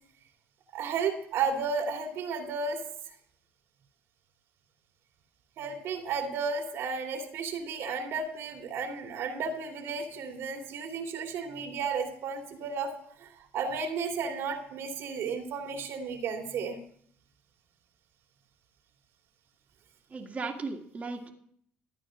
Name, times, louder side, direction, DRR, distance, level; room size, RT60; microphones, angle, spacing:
voice 1, 0.7-2.8 5.6-12.9 13.2-16.8, right 5 dB, 65° right, 3 dB, 2.6 m, -33 dB
voice 2, 20.1-21.3, right 4 dB, 35° right, 0 dB, 2.1 m, -36 dB
13.5 x 9.1 x 6.4 m, 0.64 s
supercardioid pair, 90°, 5 cm